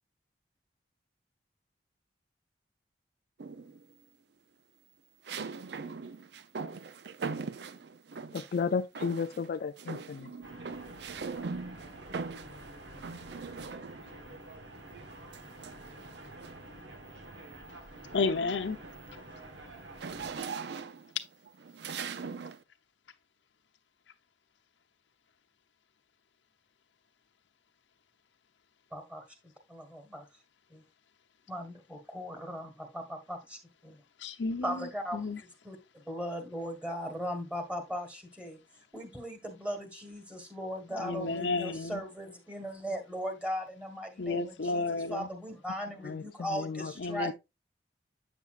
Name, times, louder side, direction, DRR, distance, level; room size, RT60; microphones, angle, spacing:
sound 1, 3.4-3.9 5.3-8.6 9.0-9.5 9.8-14.2 15.3-16.7 17.2-17.5 17.9-22.6, right 5 dB, 65° right, 0.5 m, -41 dB
voice 1, 8.3-10.3 46.0-46.9 47.3-47.4, left 5 dB, 55° left, 0.3 m, -33 dB
sound 2, 10.4-20.4, right 1 dB, 85° right, 1.3 m, -48 dB
voice 2, 18.1-18.8 34.2-35.4 40.9-42.0 44.2-45.3 47.0-47.3, left 3 dB, 90° left, 0.8 m, -32 dB
voice 3, 28.9-29.2 29.7-30.3 30.7-30.8 31.5-34.0 34.6-35.2 35.7-38.6 38.9-44.8 45.1-47.3, equal, 5° right, 1.6 m, -38 dB
8.2 x 7.0 x 2.4 m
head